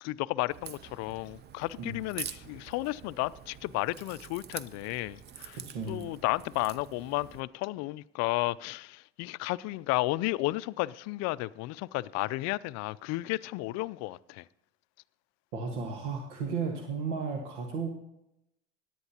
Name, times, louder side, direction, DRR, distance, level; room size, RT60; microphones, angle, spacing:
voice 1, 0.0-5.6 5.9-14.4, left 20 dB, 50° left, 0.5 m, -33 dB
Crack, 0.5-7.4, right 8 dB, 30° right, 0.6 m, -46 dB
voice 2, 5.6-6.1 15.5-17.9, right 5 dB, 75° right, 1.7 m, -34 dB
17.0 x 11.0 x 2.9 m
hypercardioid pair, 85°, 35 cm